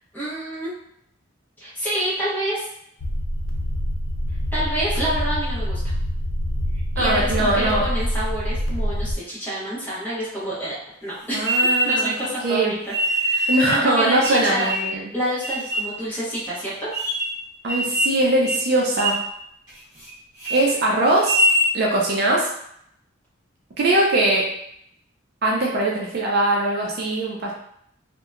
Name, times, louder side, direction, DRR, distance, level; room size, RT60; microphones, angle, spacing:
voice 1, 0.1-0.7 1.6-2.7 4.5-5.8 6.7-10.7 11.0-12.8 13.1-16.9, right 1 dB, 10° left, -9 dB, 0.9 m, -28 dB
sound 1, 3.0-9.2, equal, 70° left, 0.4 m, -25 dB
voice 2, 7.0-7.8 11.3-12.1 12.4-12.7 13.5-15.1 17.6-19.2 20.5-21.4 21.7-22.5 23.8-24.5 25.4-27.5, right 1 dB, 50° right, -2 dB, 0.4 m, -21 dB
sound 2, 11.4-12.2 12.9-13.7 14.2-15.0 15.4-15.9 16.4-16.5 16.9-17.4 17.7-18.2 18.4-18.7 19.0-19.3 19.7-20.1 20.4-20.6 21.1-21.7, right 1 dB, 20° right, 1.0 m, -23 dB
2.7 x 2.1 x 2.4 m, 0.72 s
head